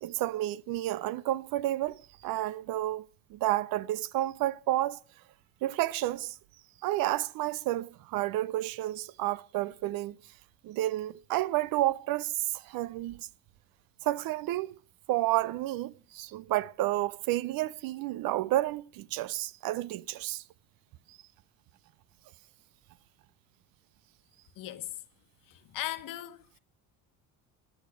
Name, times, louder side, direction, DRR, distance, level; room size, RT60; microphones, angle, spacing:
voice 1, 0.0-3.0 3.3-5.0 5.6-6.3 6.8-10.2 10.6-13.2 14.0-14.7 15.1-20.4, right 15 dB, 75° right, 0.6 m, -30 dB
voice 2, 24.6-25.0 25.5-26.6, left 14 dB, 65° left, 1.2 m, -38 dB
15.0 x 9.3 x 6.2 m
cardioid pair, 100°, 35 cm